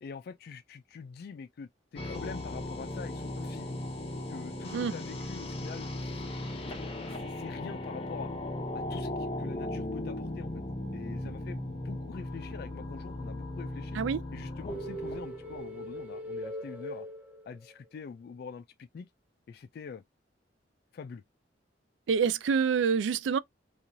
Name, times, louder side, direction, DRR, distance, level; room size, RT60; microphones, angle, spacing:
voice 1, 0.0-3.8 4.3-5.9 7.1-8.3 8.7-10.6 10.9-14.0 14.3-17.1 17.5-19.1 19.5-20.0 20.9-21.2, left 5 dB, 55° left, 0.3 m, -44 dB
sound 1, 2.0-16.0, left 1 dB, 30° left, 0.7 m, -37 dB
sound 2, 14.7-17.9, equal, 10° right, 0.7 m, -40 dB
voice 2, 22.1-23.4, right 6 dB, 75° right, 0.3 m, -26 dB
3.1 x 2.4 x 2.6 m
head